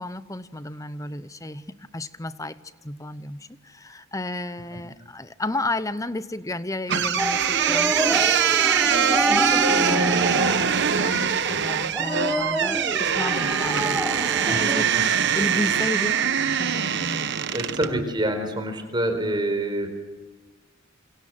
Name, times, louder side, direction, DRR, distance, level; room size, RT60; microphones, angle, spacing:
voice 1, 0.0-8.2 8.9-10.4 10.9-17.4 17.9-18.1, left 2 dB, 15° left, 14 dB, 0.8 m, -33 dB
sound 1, 6.9-17.9, right 8 dB, 55° right, 1.0 m, -23 dB
sound 2, 7.2-14.8, right 1 dB, 5° right, 1.1 m, -28 dB
voice 2, 11.4-11.7 14.5-14.6 14.9-15.1 17.5-19.9, right 1 dB, 20° right, 6 dB, 4.4 m, -27 dB
27.5 x 27.0 x 7.7 m, 1.2 s
head